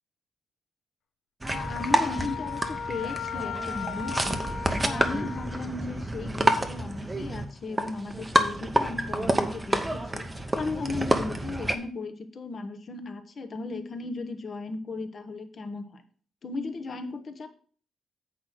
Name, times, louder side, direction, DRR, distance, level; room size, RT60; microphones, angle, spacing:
sound 1, 1.4-11.8, right 1 dB, 10° right, 0.7 m, -28 dB
Wind instrument woodwind instrument, 1.5-5.6, left 7 dB, 80° left, 0.8 m, -36 dB
voice 1, 1.5-4.5 4.8-10.2 10.6-16.0 16.4-17.5, left 3 dB, 35° left, 7 dB, 1.0 m, -36 dB
8.2 x 4.9 x 6.0 m, 0.44 s
wide cardioid pair, 175°, 0 cm